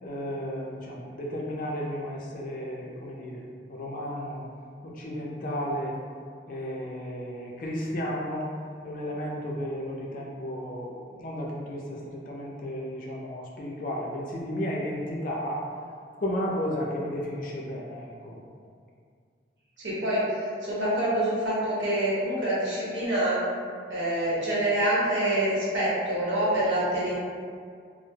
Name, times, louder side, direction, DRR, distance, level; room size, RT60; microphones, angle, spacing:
voice 1, 0.0-4.4 4.8-6.0 6.5-8.5 8.8-15.6 16.2-18.4, equal, 45° left, -3 dB, 0.4 m, -33 dB
voice 2, 19.8-20.2 20.6-23.4 23.9-27.1, right 1 dB, 85° right, -8 dB, 0.9 m, -26 dB
2.1 x 2.0 x 3.2 m, 2.1 s
head